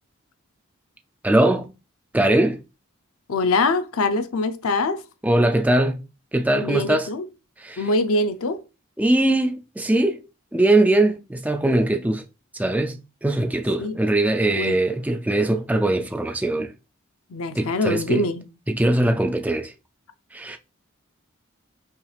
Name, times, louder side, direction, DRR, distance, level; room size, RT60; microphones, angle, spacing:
voice 1, 1.2-1.7 2.1-2.6 5.2-6.0 6.3-7.1 7.6-7.8 9.0-10.2 10.5-12.2 12.5-16.7 17.6-18.3 18.7-19.7 20.3-20.6, right 1 dB, 5° right, 0.3 m, -21 dB
voice 2, 3.3-5.0 6.6-7.2 7.8-8.6 13.8-13.9 14.6-14.8 17.3-18.4, left 2 dB, 80° left, 0.6 m, -23 dB
5.6 x 3.3 x 2.4 m
head